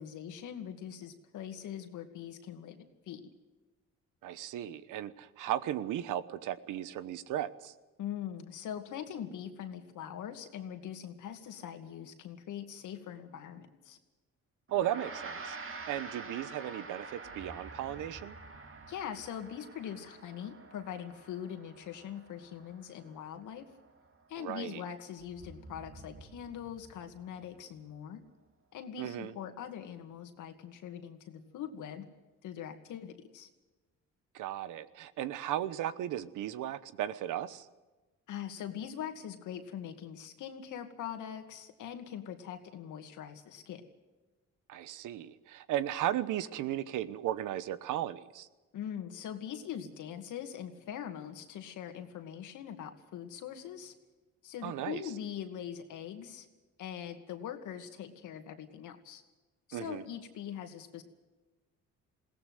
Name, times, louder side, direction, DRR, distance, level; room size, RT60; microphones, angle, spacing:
voice 1, 0.0-3.2 8.0-14.0 18.9-23.6 24.3-28.2 28.7-32.1 32.4-33.5 38.3-43.8 48.7-53.9 54.4-56.5 56.8-59.2 59.7-61.0, left 9 dB, 80° left, 7 dB, 2.4 m, -42 dB
voice 2, 4.2-7.7 14.7-18.3 24.4-24.8 29.0-29.3 34.3-37.7 44.7-48.5 54.6-55.0 59.7-60.0, right 12 dB, 90° right, 14 dB, 1.1 m, -36 dB
Gong, 14.7-24.3, right 4 dB, 45° right, 2.5 m, -47 dB
sound 1, 17.2-20.2 25.2-28.4, right 3 dB, 60° right, 4.0 m, -55 dB
21.5 x 17.0 x 7.8 m, 1.2 s
cardioid pair, 90°, 30 cm